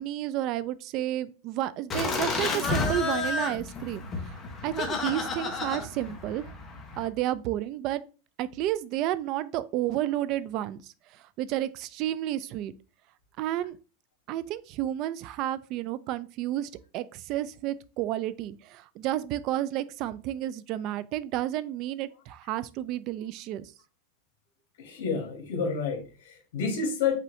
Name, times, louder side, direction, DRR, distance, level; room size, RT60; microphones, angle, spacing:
voice 1, 0.0-6.5 7.0-8.0 8.4-12.7 13.4-13.8 14.3-23.7, right 13 dB, 40° right, 0.3 m, -31 dB
Laughter, 1.9-7.1, left 4 dB, 20° left, 0.9 m, -31 dB
voice 2, 24.8-27.2, left 5 dB, 75° left, 1.6 m, -29 dB
5.5 x 2.6 x 3.1 m
supercardioid pair, 150°, 0 cm